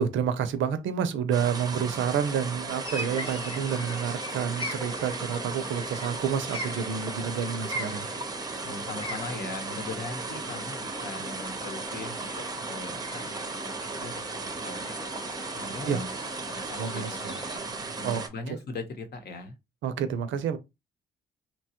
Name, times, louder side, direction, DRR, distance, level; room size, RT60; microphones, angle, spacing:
voice 1, 0.0-8.1 15.9-16.0 16.8-17.4 18.0-18.2 18.5-18.6 19.8-20.6, right 7 dB, 75° right, 0.5 m, -29 dB
sound 1, 1.3-18.3, right 3 dB, 20° right, 0.6 m, -36 dB
sound 2, 2.8-17.6, left 1 dB, 25° left, 0.9 m, -41 dB
voice 2, 8.6-12.3 12.6-14.8 15.5-16.1 16.5-19.6, left 3 dB, 55° left, 0.9 m, -40 dB
2.9 x 2.2 x 2.8 m
cardioid pair, 90°, 20 cm